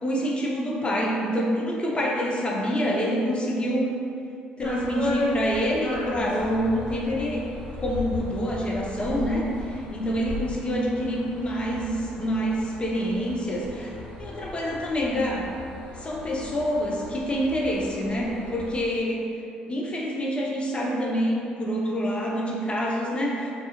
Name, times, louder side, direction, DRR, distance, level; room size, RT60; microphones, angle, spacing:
voice 1, 0.0-3.9 4.6-7.5 7.8-15.5 15.9-19.3 19.7-23.5, equal, 25° left, -3 dB, 0.6 m, -27 dB
sound 1, 4.6-18.8, left 1 dB, 70° left, 0.9 m, -35 dB
2.4 x 2.3 x 2.8 m, 2.5 s
hypercardioid pair, 50°, 4 cm